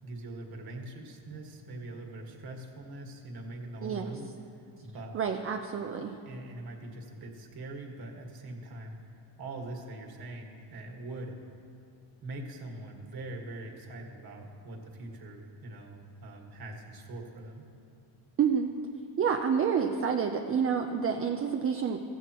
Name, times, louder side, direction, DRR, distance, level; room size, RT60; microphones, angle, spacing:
voice 1, 0.0-4.3 4.8-5.1 6.3-9.0 9.4-11.4 12.2-17.7, right 2 dB, 50° right, 1 dB, 1.8 m, -42 dB
voice 2, 3.8-4.1 5.1-6.2 18.4-18.7 19.2-22.0, right 7 dB, 30° right, 4 dB, 0.5 m, -28 dB
16.0 x 14.0 x 3.0 m, 2.7 s
cardioid pair, 145°, 45 cm